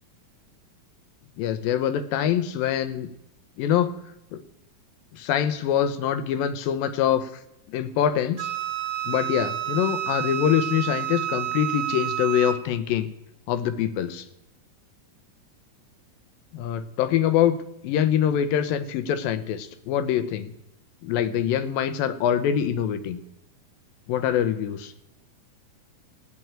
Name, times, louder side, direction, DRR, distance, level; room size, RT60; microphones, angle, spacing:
voice 1, 1.4-3.1 3.6-4.0 4.3-4.4 5.1-7.3 7.7-8.5 9.1-13.1 13.5-14.3 16.5-17.6 17.8-20.5 21.0-23.2 24.1-24.9, left 9 dB, 80° left, 11 dB, 2.5 m, -24 dB
Wind instrument woodwind instrument, 8.4-12.6, right 11 dB, 85° right, 2.5 m, -29 dB
17.0 x 6.1 x 8.8 m, 0.84 s
omnidirectional pair, 4.2 m